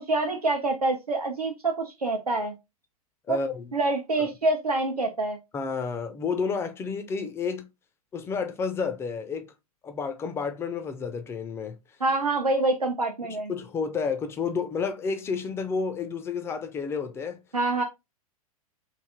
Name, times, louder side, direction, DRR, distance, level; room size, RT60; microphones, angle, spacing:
voice 1, 0.1-2.5 3.3-3.4 3.7-5.4 12.0-13.5 17.5-17.8, right 2 dB, 85° right, 0.7 m, -26 dB
voice 2, 3.3-3.7 4.2-4.3 5.5-7.7 8.1-9.5 9.8-11.8 13.5-17.4, left 5 dB, 15° left, 0.4 m, -30 dB
3.3 x 2.5 x 3.5 m
figure-of-eight pair, 100°, 19 cm